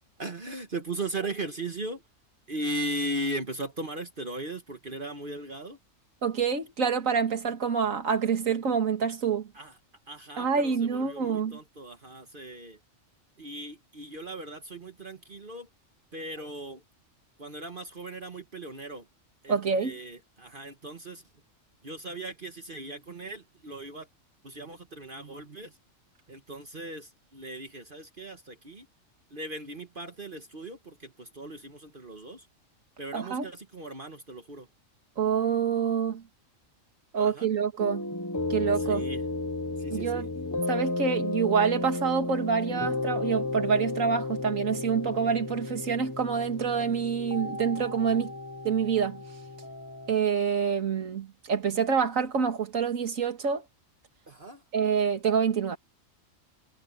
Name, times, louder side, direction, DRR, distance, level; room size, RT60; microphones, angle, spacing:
voice 1, 0.2-2.0 2.5-5.8 9.5-9.7 10.1-12.8 13.4-15.7 16.1-16.8 17.4-19.0 19.4-21.2 21.8-24.1 24.4-25.7 26.3-28.8 29.3-32.4 33.0-34.7 37.2-37.5 38.9-39.2 39.8-40.3 54.3-54.6, right 1 dB, 40° right, 1.7 m, -38 dB
voice 2, 6.2-9.5 10.4-11.6 19.5-19.9 33.1-33.5 35.2-36.2 37.1-38.0 38.5-39.0 39.9-40.3 40.7-48.3 48.6-49.2 50.1-53.6 54.7-55.8, right 6 dB, 85° right, 2.2 m, -27 dB
sound 1, 37.8-50.1, left 2 dB, 20° left, 0.6 m, -33 dB
omnidirectional pair, 1.3 m